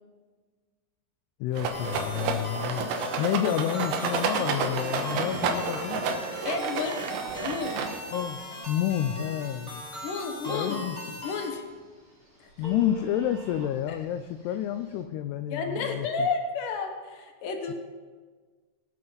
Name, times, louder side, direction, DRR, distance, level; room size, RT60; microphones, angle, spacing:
voice 1, 1.4-2.9 3.2-6.1 8.1-9.8 10.5-11.2 12.6-16.3 17.7-17.8, left 11 dB, 90° left, 10 dB, 2.3 m, -30 dB
Rattle, 1.6-8.2, right 5 dB, 80° right, 3.3 m, -30 dB
sound 1, 1.7-11.5, equal, 10° left, 2.3 m, -39 dB
voice 2, 6.4-7.1 7.4-7.8 10.0-10.8 11.2-11.6 13.9-14.0 15.5-17.7, left 4 dB, 65° left, 4 dB, 2.2 m, -31 dB
Telephone, 8.6-15.0, left 1 dB, 30° right, 4.1 m, -48 dB
22.5 x 7.6 x 4.0 m, 1.4 s
omnidirectional pair, 5.2 m